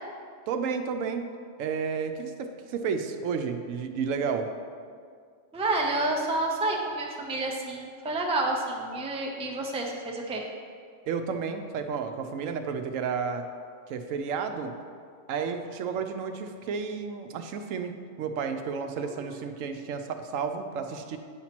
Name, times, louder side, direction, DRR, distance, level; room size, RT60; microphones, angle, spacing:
voice 1, 0.5-1.3 1.6-4.5 11.1-13.4 13.9-14.7 15.3-21.2, right 6 dB, 85° right, 7 dB, 1.0 m, -32 dB
voice 2, 5.5-10.4 19.0-19.3, right 2 dB, 10° right, 0 dB, 0.4 m, -29 dB
8.4 x 3.0 x 5.8 m, 2.1 s
omnidirectional pair, 1.3 m